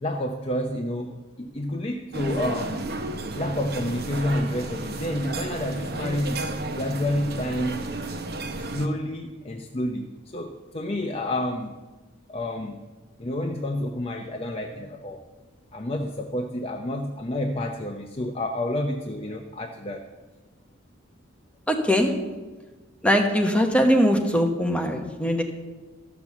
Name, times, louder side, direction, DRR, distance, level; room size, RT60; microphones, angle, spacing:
voice 1, 0.0-2.9 3.4-7.8 8.6-11.7 12.3-12.8 13.2-15.2 15.7-20.0, left 1 dB, 30° left, 3 dB, 0.6 m, -29 dB
sound 1, 2.1-8.9, right 2 dB, 50° right, 1.0 m, -32 dB
voice 2, 21.7-22.1 23.0-25.4, equal, 5° left, 3 dB, 1.0 m, -21 dB
13.5 x 6.1 x 7.2 m, 1.2 s
head